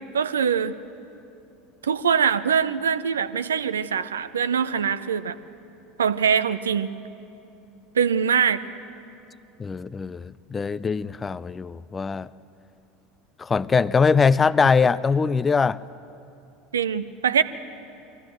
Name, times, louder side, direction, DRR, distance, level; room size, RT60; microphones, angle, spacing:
voice 1, 0.1-0.8 1.8-5.4 6.0-6.9 8.0-8.6 16.7-17.4, right 7 dB, 75° right, 14 dB, 0.6 m, -23 dB
voice 2, 9.6-12.3 13.4-15.8, left 5 dB, 20° left, 18 dB, 0.5 m, -22 dB
23.0 x 16.0 x 7.6 m, 2.8 s
figure-of-eight pair, 75°, 0 cm